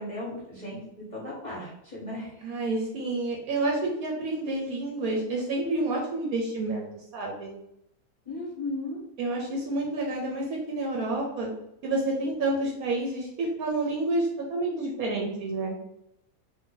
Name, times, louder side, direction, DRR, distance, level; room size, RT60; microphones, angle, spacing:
voice 1, 0.0-2.3 8.3-9.0, left 1 dB, 40° left, -5 dB, 0.7 m, -36 dB
voice 2, 2.4-7.6 9.2-11.5 11.8-15.8, right 2 dB, 70° right, -1 dB, 1.0 m, -29 dB
2.6 x 2.5 x 3.7 m, 0.82 s
omnidirectional pair, 1.7 m